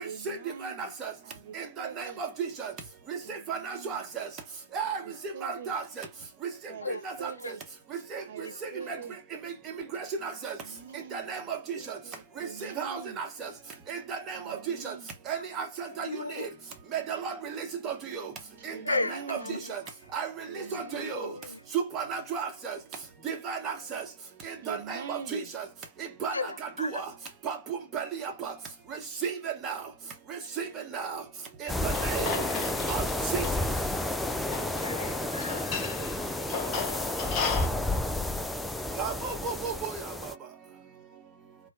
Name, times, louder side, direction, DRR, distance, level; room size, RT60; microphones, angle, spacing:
voice 1, 0.0-0.9 1.2-2.2 3.2-4.1 4.8-5.8 6.7-7.6 8.3-9.2 10.2-13.2 14.3-15.2 18.7-19.6 20.5-21.4 24.6-25.5, right 6 dB, 45° right, 1.0 m, -45 dB
voice 2, 0.6-1.1 1.5-2.3 2.6-2.7 3.1-4.3 4.7-5.0 5.4-6.0 7.0-7.3 8.1-8.2 8.6-9.0 9.4-9.5 9.9-10.6 11.1-11.6 11.9-12.0 12.6-13.5 13.9-14.6 14.8-14.9 15.3-16.1 16.3-16.5 16.9-18.3 18.6-19.4 19.7-19.8 20.1-20.3 20.5-21.3 21.9-22.8 23.2-24.0 24.4-25.6 26.2-26.3 26.8-27.1 27.4-28.5 28.9-29.8 30.6-30.7 30.9-31.2 31.6-32.3 32.9-33.0 33.3-33.5 39.0-39.9, right 6 dB, 20° right, 1.0 m, -34 dB
voice 3, 6.8-7.5 8.4-8.6 15.3-15.4 16.0-16.5 18.8-19.7 20.7-21.6 26.3-27.0 31.8-32.4 34.8-36.0, left 3 dB, 75° left, 0.7 m, -36 dB
sound 1, 31.7-40.4, left 1 dB, 5° left, 0.3 m, -31 dB
sound 2, 31.9-37.7, left 5 dB, 25° left, 0.7 m, -36 dB
3.1 x 2.2 x 3.3 m
figure-of-eight pair, 125°, 0 cm